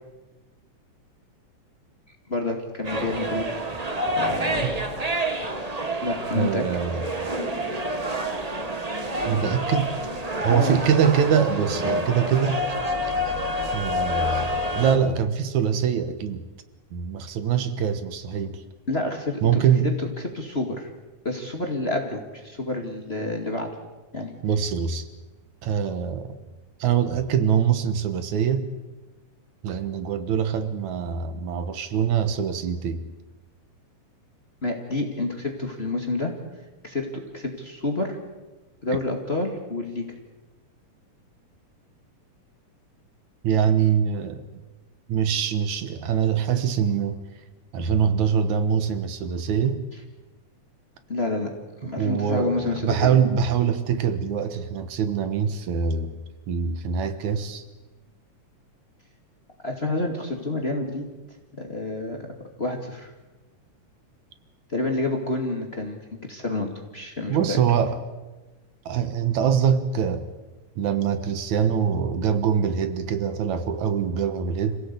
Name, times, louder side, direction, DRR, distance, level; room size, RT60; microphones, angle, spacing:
voice 1, 2.3-3.5 4.2-4.6 6.0-6.6 10.4-10.8 18.9-19.9 20.3-20.9 21.2-23.7 24.1-24.3 34.6-36.3 36.8-38.2 38.8-40.1 51.1-51.5 51.8-53.1 59.6-61.1 61.5-62.2 62.6-63.1 64.7-67.6, left 2 dB, 25° left, 2 dB, 2.0 m, -28 dB
sound 1, 2.8-15.0, equal, 30° right, 0.6 m, -28 dB
voice 2, 6.3-7.0 9.2-9.9 10.4-12.6 13.7-16.5 16.9-18.6 19.4-19.9 24.4-25.1 25.6-26.4 26.8-28.7 29.6-33.0 43.4-44.4 45.1-47.2 47.7-49.8 52.0-56.2 56.5-57.6 67.3-68.0 68.9-70.3 70.8-74.8, right 7 dB, 75° right, 10 dB, 2.6 m, -24 dB
26.5 x 16.5 x 8.3 m, 1.2 s
omnidirectional pair, 3.4 m